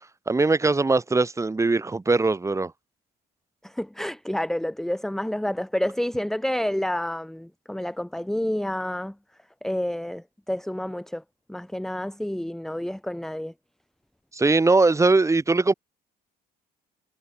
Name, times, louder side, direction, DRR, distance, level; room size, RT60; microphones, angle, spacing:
voice 1, 0.3-2.7 14.3-15.7, right 3 dB, 15° right, 3.1 m, -21 dB
voice 2, 3.6-9.1 9.6-11.2 11.5-13.5, left 1 dB, ahead, 1.4 m, -29 dB
cardioid pair, 110°, 17 cm